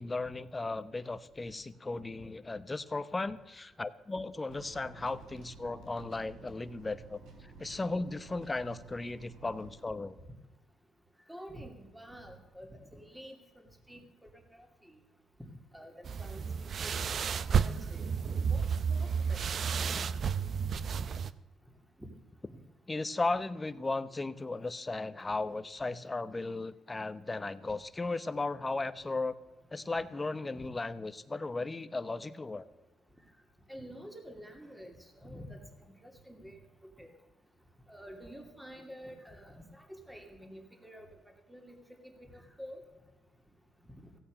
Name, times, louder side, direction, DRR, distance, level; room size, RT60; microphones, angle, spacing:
voice 1, 0.0-10.2 22.9-29.4 29.7-32.7, left 3 dB, 20° left, 14 dB, 0.8 m, -36 dB
sound 1, 4.5-9.8, right 4 dB, 80° right, 2.7 m, -53 dB
voice 2, 11.3-13.4 13.9-14.7 15.7-17.2 17.4-18.0 18.3-20.0 22.0-22.1 22.5-22.6 30.6-30.7 33.7-37.1 37.9-41.1 41.5-41.7 42.0-42.8, equal, 5° right, 4 dB, 2.5 m, -49 dB
sound 2, 16.0-21.3, right 6 dB, 55° right, 0.6 m, -31 dB
15.5 x 8.7 x 6.5 m, 1.1 s
cardioid pair, 90°, 0 cm